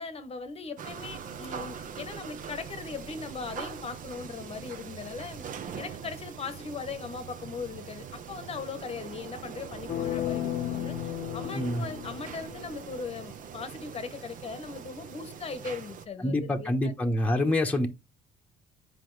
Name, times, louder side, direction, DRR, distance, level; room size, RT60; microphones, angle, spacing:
voice 1, 0.0-5.5 5.8-11.0 11.3-16.9, left 5 dB, 35° left, 1.0 m, -39 dB
sound 1, 0.8-16.1, right 7 dB, 55° right, 1.0 m, -42 dB
sound 2, 9.9-12.9, left 13 dB, 50° left, 0.5 m, -34 dB
voice 2, 11.5-11.8 16.2-17.9, left 1 dB, 10° left, 1.0 m, -26 dB
7.7 x 5.0 x 3.2 m
cardioid pair, 110°, 17 cm